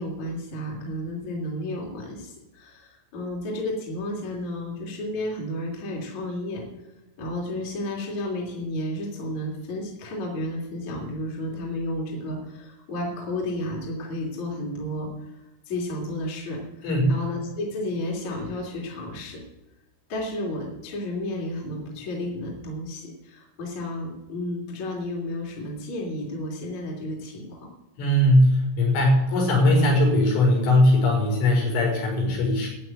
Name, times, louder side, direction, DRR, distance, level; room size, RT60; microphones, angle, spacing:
voice 1, 0.0-6.6 7.2-15.3 15.7-19.4 20.1-27.7, left 1 dB, 40° left, -2 dB, 3.7 m, -32 dB
voice 2, 16.8-17.2 28.0-32.7, left 1 dB, 75° left, -1 dB, 7.4 m, -20 dB
13.5 x 7.9 x 9.1 m, 1.1 s
omnidirectional pair, 5.8 m